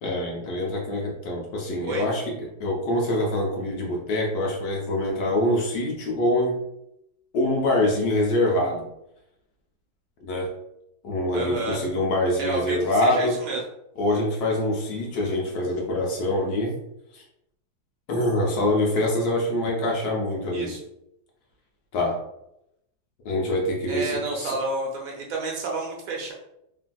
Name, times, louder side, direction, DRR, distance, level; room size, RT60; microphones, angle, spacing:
voice 1, 0.0-6.6 7.3-8.9 10.2-10.5 11.0-13.4 14.0-16.7 17.1-17.2 18.1-20.7 21.9-22.2 23.2-24.5, left 1 dB, 75° left, -1 dB, 0.9 m, -25 dB
voice 2, 11.3-11.8 12.4-13.6 20.5-20.8 23.9-26.3, right 3 dB, 90° right, -1 dB, 1.5 m, -30 dB
3.3 x 2.5 x 2.2 m, 0.82 s
omnidirectional pair, 2.1 m